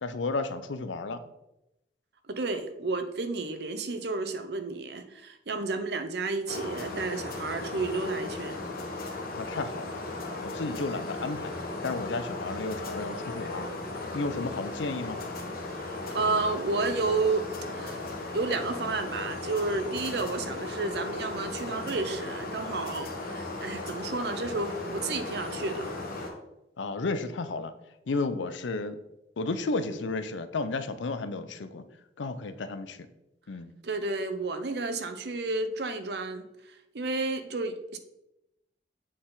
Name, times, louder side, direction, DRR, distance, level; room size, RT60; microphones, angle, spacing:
voice 1, 0.0-1.2 9.4-11.5 11.8-13.7 14.1-15.2 26.8-27.7 28.1-29.0 29.4-31.9 32.2-33.1 33.5-33.7, left 3 dB, 90° left, 11 dB, 0.5 m, -33 dB
voice 2, 2.3-8.6 15.8-18.1 18.3-26.0 33.8-38.0, right 3 dB, 60° right, 9 dB, 0.6 m, -31 dB
sound 1, 6.5-26.3, left 2 dB, 55° left, 1.1 m, -36 dB
7.7 x 4.1 x 3.9 m, 0.90 s
head